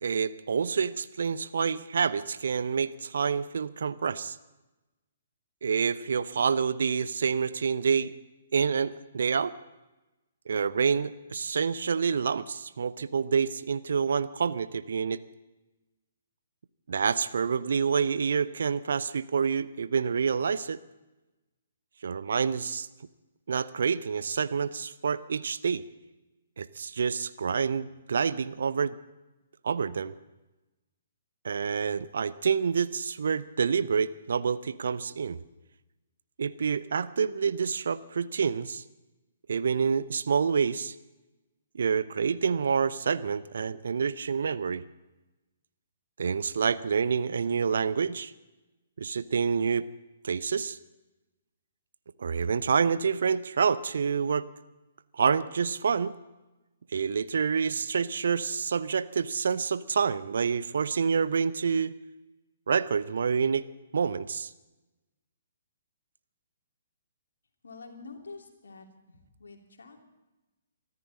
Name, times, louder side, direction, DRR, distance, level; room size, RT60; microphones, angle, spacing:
voice 1, 0.0-4.4 5.6-8.1 8.5-9.6 10.5-15.2 16.9-20.8 22.0-22.9 23.5-25.8 26.6-29.0 29.6-30.1 31.4-35.4 36.4-38.8 39.5-40.9 41.7-44.8 46.2-48.3 49.0-49.9 50.2-50.8 52.2-54.5 55.1-56.1 56.9-62.0 62.7-63.7 63.9-64.5, right 6 dB, 60° right, 16 dB, 0.7 m, -27 dB
voice 2, 67.6-70.0, left 4 dB, 65° left, 2 dB, 3.0 m, -47 dB
24.0 x 13.5 x 4.2 m, 1.1 s
figure-of-eight pair, 125°, 0 cm